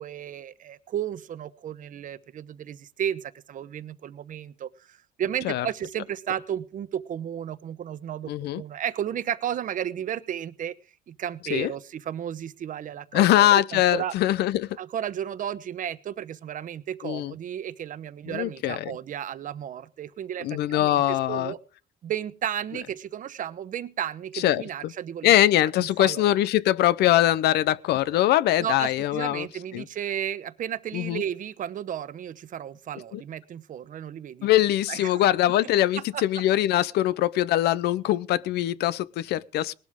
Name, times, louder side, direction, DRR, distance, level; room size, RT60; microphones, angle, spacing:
voice 1, 0.0-10.7 11.1-14.1 14.8-21.6 22.0-25.3 25.8-26.3 28.6-34.5 34.9-35.2 35.5-35.6 36.0-36.4, right 10 dB, 50° right, 1.0 m, -33 dB
voice 2, 8.3-8.6 11.5-11.7 13.1-14.7 17.0-17.3 18.3-18.9 20.4-21.5 24.3-24.9 25.2-29.5 29.7-29.8 30.9-31.2 33.1-33.2 34.4-39.7, left 13 dB, 75° left, 0.7 m, -22 dB
19.0 x 12.5 x 3.7 m
cardioid pair, 110°, 17 cm